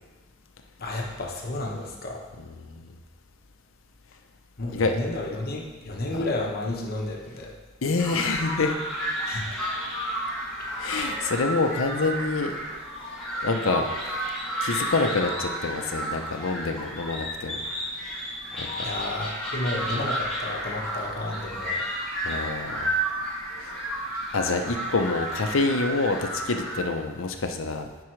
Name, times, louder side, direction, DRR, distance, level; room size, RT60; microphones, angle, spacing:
voice 1, 0.8-2.3 4.6-7.5 9.2-9.6 10.9-11.1 18.8-21.8, left 2 dB, 45° left, -1 dB, 1.1 m, -32 dB
voice 2, 7.8-8.8 10.8-12.5 13.4-13.9 14.6-17.6 18.6-18.9 22.2-22.9 23.6-23.7 24.3-27.9, left 3 dB, 70° left, 5 dB, 0.7 m, -27 dB
sound 1, 8.0-26.8, right 1 dB, 5° left, 2.3 m, -32 dB
10.5 x 4.7 x 3.2 m, 1.3 s
head